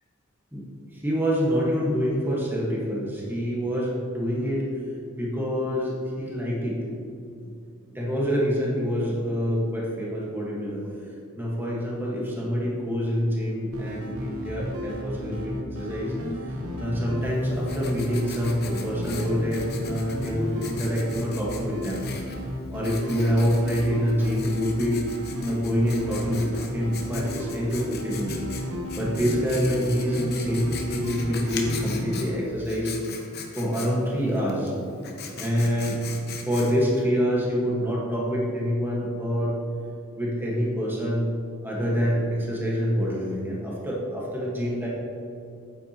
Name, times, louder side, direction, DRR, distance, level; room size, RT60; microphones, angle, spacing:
voice 1, 0.9-4.6 5.2-6.8 7.4-7.5 7.9-10.8 11.4-16.1 16.8-22.0 22.7-25.1 25.4-28.3 29.0-32.9 33.5-34.7 35.4-36.0 36.4-39.6 40.2-41.3 41.6-44.9, equal, 10° right, -5 dB, 1.5 m, -26 dB
sound 1, 13.7-32.4, equal, 80° right, 1.1 m, -33 dB
Writing, 17.2-37.0, left 5 dB, 50° left, 0.9 m, -41 dB
9.0 x 8.9 x 3.0 m, 2.5 s
head